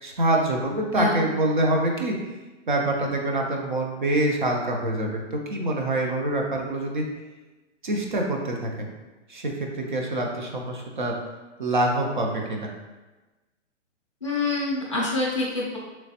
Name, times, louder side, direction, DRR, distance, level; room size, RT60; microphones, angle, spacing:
voice 1, 0.0-2.2 2.7-7.0 7.8-8.9 9.3-11.1 11.6-12.7, right 1 dB, 45° right, 1 dB, 0.4 m, -25 dB
voice 2, 14.2-15.8, left 3 dB, 25° left, -6 dB, 0.4 m, -26 dB
3.2 x 3.0 x 2.7 m, 1.2 s
hypercardioid pair, 175°, 37 cm